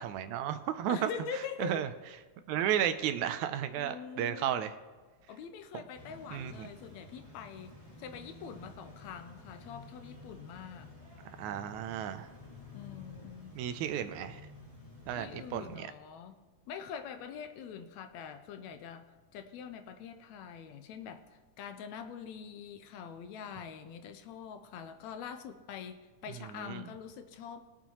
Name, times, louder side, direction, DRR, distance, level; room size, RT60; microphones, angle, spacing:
voice 1, 0.0-1.1 1.6-1.9 2.5-4.8 5.7-5.8 6.3-6.7 11.4-12.3 13.5-14.4 15.1-15.9 26.5-26.9, right 10 dB, 85° right, 10 dB, 2.0 m, -33 dB
voice 2, 0.9-1.9 3.7-4.6 5.3-10.9 12.7-13.6 15.2-16.4 16.7-19.0 19.3-27.6, left 7 dB, 80° left, 8 dB, 1.9 m, -44 dB
sound 1, 5.9-15.8, left 2 dB, 15° left, 1.3 m, -52 dB
21.0 x 7.0 x 3.0 m, 1.3 s
omnidirectional pair, 3.4 m